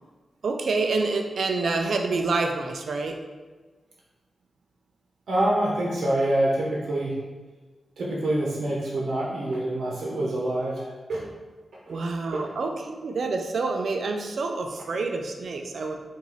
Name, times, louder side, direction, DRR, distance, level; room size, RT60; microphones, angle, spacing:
voice 1, 0.4-3.2 11.9-15.9, right 3 dB, 65° right, 3 dB, 0.4 m, -27 dB
voice 2, 5.3-7.2 8.0-11.2 11.9-12.0 12.3-12.5, right 1 dB, 85° right, -4 dB, 0.9 m, -26 dB
4.0 x 2.6 x 4.7 m, 1.3 s
wide cardioid pair, 160°, 0 cm